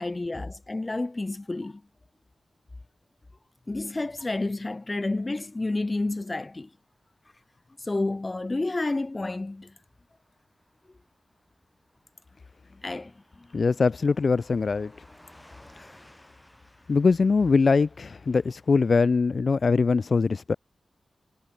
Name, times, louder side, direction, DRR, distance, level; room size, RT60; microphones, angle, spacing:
voice 1, 0.0-1.8 3.7-6.7 7.8-9.7 12.7-13.6 15.8-15.9, left 2 dB, 25° left, 0.8 m, -30 dB
Car passing by / Truck, 4.8-19.2, left 1 dB, 10° left, 7.8 m, -59 dB
voice 2, 13.5-14.9 16.9-20.5, left 4 dB, 50° left, 0.3 m, -22 dB
wide cardioid pair, 95°, 0 cm